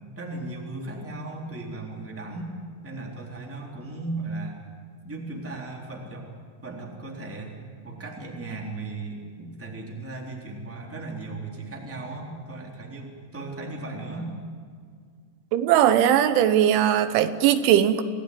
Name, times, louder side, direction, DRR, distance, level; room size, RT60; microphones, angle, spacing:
voice 1, 0.2-2.5 2.8-4.6 5.0-6.3 6.6-7.5 7.8-14.3, right 2 dB, 5° right, -1 dB, 2.6 m, -36 dB
voice 2, 15.5-18.0, right 10 dB, 85° right, 11 dB, 3.4 m, -19 dB
26.5 x 17.0 x 9.4 m, 2.1 s
omnidirectional pair, 5.4 m